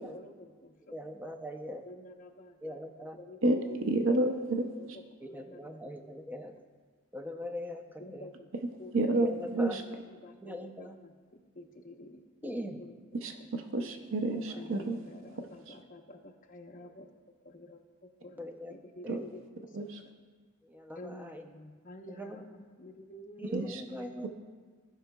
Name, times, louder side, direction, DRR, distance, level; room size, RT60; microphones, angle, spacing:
voice 1, 0.0-1.2 1.8-3.8 4.2-4.9 5.3-5.8 8.0-8.5 8.8-8.9 9.6-12.5 12.8-12.9 14.6-17.1 17.4-17.8 18.2-19.8 21.0-24.3, left 1 dB, 40° left, 1 dB, 0.8 m, -50 dB
voice 2, 0.9-1.9 2.6-3.2 5.2-6.6 7.1-8.3 9.1-9.8 10.3-11.0 12.4-12.8 14.5-14.6 18.4-18.7 19.0-19.2 20.6-21.4 22.1-22.4 23.4-24.3, left 1 dB, 10° right, 5 dB, 0.5 m, -41 dB
voice 3, 3.4-5.0 8.9-9.3 9.5-9.8 13.2-15.0 15.7-15.8 19.1-19.2 19.7-20.0 23.4-23.8 24.2-24.3, right 2 dB, 60° right, 5 dB, 0.6 m, -30 dB
17.0 x 5.7 x 2.2 m, 1.5 s
head